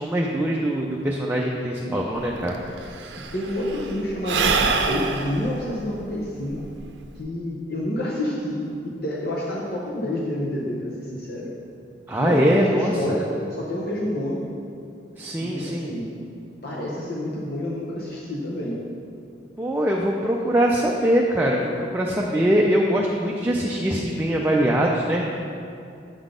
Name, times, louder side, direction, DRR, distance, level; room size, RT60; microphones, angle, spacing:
voice 1, 0.0-2.6 12.1-13.2 15.2-15.9 19.6-25.4, right 1 dB, 10° right, -2 dB, 0.4 m, -22 dB
Sigh / Breathing, 2.2-2.3 2.5-7.2, right 4 dB, 80° right, 0.5 m, -26 dB
voice 2, 3.2-6.7 7.2-11.5 12.2-13.3 13.6-14.5 15.4-16.1 16.6-18.8, left 1 dB, 60° left, -5 dB, 0.9 m, -28 dB
8.0 x 3.9 x 5.0 m, 2.5 s
head